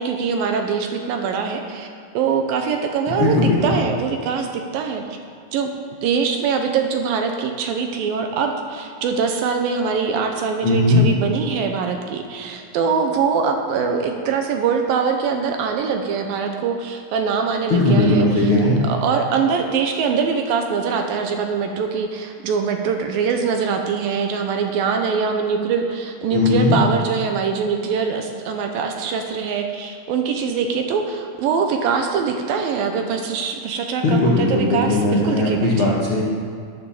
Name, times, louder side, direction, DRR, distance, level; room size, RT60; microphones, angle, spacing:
voice 1, 0.0-1.9 2.1-5.0 5.5-5.7 6.0-18.5 18.9-36.0, right 6 dB, 75° right, 4 dB, 2.4 m, -23 dB
voice 2, 3.2-3.7 10.6-11.0 17.7-18.8 26.3-26.7 34.0-36.2, left 2 dB, 60° left, -5 dB, 1.4 m, -18 dB
12.0 x 10.0 x 7.0 m, 2.2 s
omnidirectional pair, 4.6 m